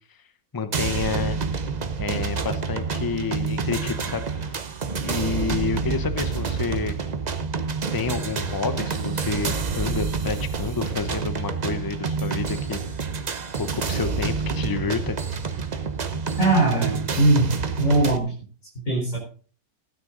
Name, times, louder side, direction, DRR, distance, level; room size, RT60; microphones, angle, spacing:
voice 1, 0.5-1.4 2.0-4.6 5.0-7.0 7.9-12.8 13.6-15.2, left 5 dB, 25° left, 10 dB, 0.5 m, -29 dB
sound 1, 0.7-18.2, right 5 dB, 40° right, 0.6 m, -28 dB
voice 2, 16.4-17.5 17.8-18.3 18.9-19.2, right 2 dB, 50° left, -1 dB, 4.4 m, -20 dB
16.0 x 9.4 x 3.8 m, 0.40 s
omnidirectional pair, 1.8 m